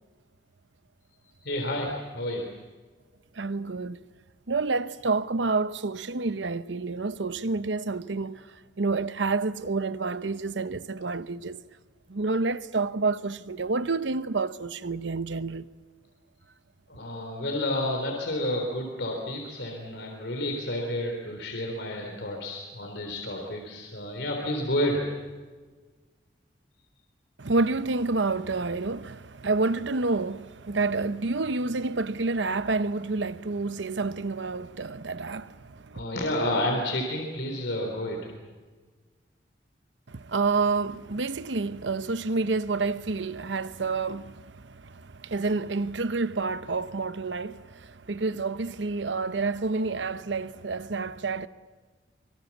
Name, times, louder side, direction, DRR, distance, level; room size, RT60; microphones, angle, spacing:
voice 1, 1.2-2.5 16.9-25.0 35.9-38.3, left 1 dB, 80° left, 3.8 m, -30 dB
voice 2, 3.4-4.0 4.5-8.5 8.8-11.6 12.1-15.7 27.4-36.0 40.1-51.5, right 3 dB, 85° right, 0.9 m, -29 dB
25.0 x 24.0 x 7.3 m
head